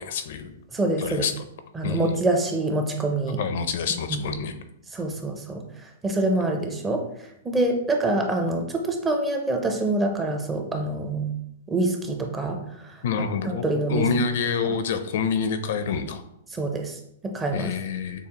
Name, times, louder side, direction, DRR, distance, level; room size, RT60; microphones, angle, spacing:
voice 1, 0.0-0.5 1.0-1.3 1.8-2.1 3.4-4.5 13.0-16.2 17.5-18.3, left 6 dB, 60° left, 9 dB, 0.5 m, -27 dB
voice 2, 0.7-1.3 1.7-3.4 4.1-4.2 4.9-7.0 7.4-11.3 11.7-13.0 13.4-14.1 14.6-14.8 16.5-17.7, right 2 dB, 10° right, 2 dB, 0.5 m, -26 dB
6.8 x 2.3 x 2.9 m, 0.79 s
hypercardioid pair, 150°, 0 cm